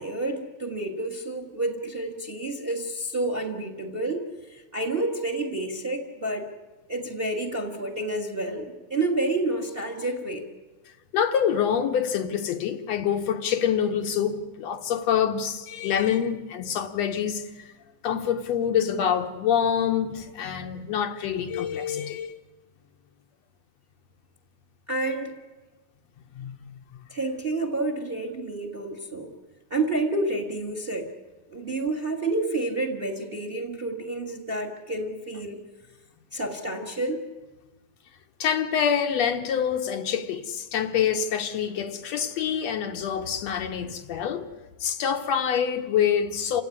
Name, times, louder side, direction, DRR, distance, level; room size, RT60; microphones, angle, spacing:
voice 1, 0.0-6.5 6.9-10.5 24.9-25.4 27.1-29.3 29.7-31.1 31.5-35.6 36.3-37.2, right 2 dB, 25° right, 1.4 m, -29 dB
voice 2, 11.1-17.7 18.0-22.3 26.4-26.8 38.4-44.5 44.8-46.6, left 8 dB, 70° left, 2.0 m, -26 dB
28.5 x 16.5 x 9.7 m
omnidirectional pair, 3.4 m